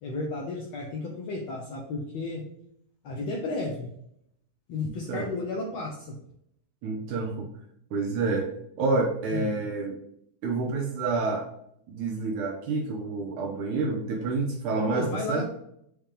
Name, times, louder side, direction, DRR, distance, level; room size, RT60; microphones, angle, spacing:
voice 1, 0.0-2.4 3.0-3.9 4.7-6.2 9.3-9.6 14.9-15.4, left 3 dB, 85° left, -2 dB, 1.4 m, -33 dB
voice 2, 6.8-7.5 7.9-8.5 8.8-10.0 10.4-11.5 11.9-15.4, right 3 dB, 75° right, 0 dB, 2.0 m, -28 dB
7.4 x 3.5 x 3.6 m, 0.73 s
omnidirectional pair, 4.2 m